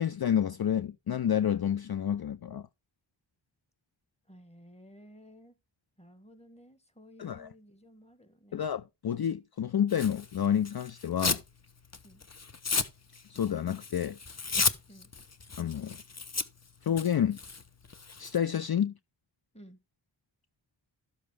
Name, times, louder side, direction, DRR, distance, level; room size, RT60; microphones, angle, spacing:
voice 1, 0.0-2.7 7.2-7.5 8.5-11.4 13.3-14.2 15.6-16.0 16.8-17.4 18.2-18.9, left 9 dB, 50° left, 0.5 m, -29 dB
voice 2, 4.3-5.5 6.0-8.6 12.0-12.2 14.9-15.1 19.5-19.8, equal, 15° left, 1.7 m, -54 dB
Tearing, 9.9-11.5 11.8-18.4, left 4 dB, 35° left, 0.9 m, -34 dB
13.0 x 7.3 x 3.3 m
wide cardioid pair, 55°, 48 cm